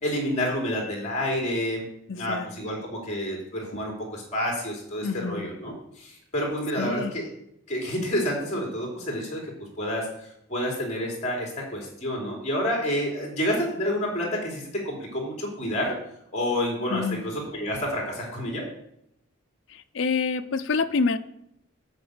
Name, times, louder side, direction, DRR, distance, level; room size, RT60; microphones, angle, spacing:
voice 1, 0.0-1.8 2.2-7.3 7.7-9.4 9.8-10.0 10.5-15.9 16.3-18.6, equal, 35° left, -1 dB, 3.2 m, -29 dB
voice 2, 2.1-2.5 3.7-3.9 5.0-5.5 6.8-7.1 16.9-17.2 19.7-21.2, left 4 dB, 60° left, 9 dB, 0.5 m, -27 dB
8.1 x 5.9 x 7.7 m, 0.77 s
head